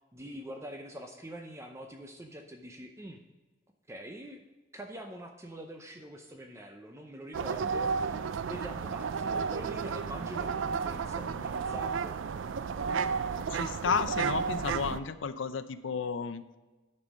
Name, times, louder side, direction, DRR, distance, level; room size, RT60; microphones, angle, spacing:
voice 1, 0.1-3.2 3.9-4.4 4.7-12.2 14.6-15.0, right 1 dB, 15° right, 4 dB, 0.6 m, -44 dB
sound 1, 7.3-15.0, right 5 dB, 75° right, 0.4 m, -32 dB
voice 2, 13.5-16.4, left 5 dB, 70° left, 12 dB, 0.6 m, -32 dB
10.0 x 5.4 x 5.3 m, 1.2 s
head